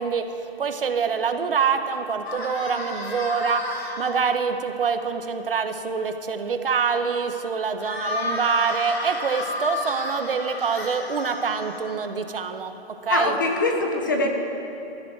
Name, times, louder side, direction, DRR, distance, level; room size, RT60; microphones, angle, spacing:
voice 1, 0.0-13.4, right 6 dB, 60° right, 8 dB, 1.2 m, -26 dB
sound 1, 2.2-4.1 7.8-12.1, left 2 dB, 80° left, 3.2 m, -31 dB
voice 2, 13.1-14.3, left 3 dB, 20° left, 3 dB, 0.8 m, -23 dB
17.5 x 13.5 x 4.7 m, 2.9 s
hypercardioid pair, 180°, 31 cm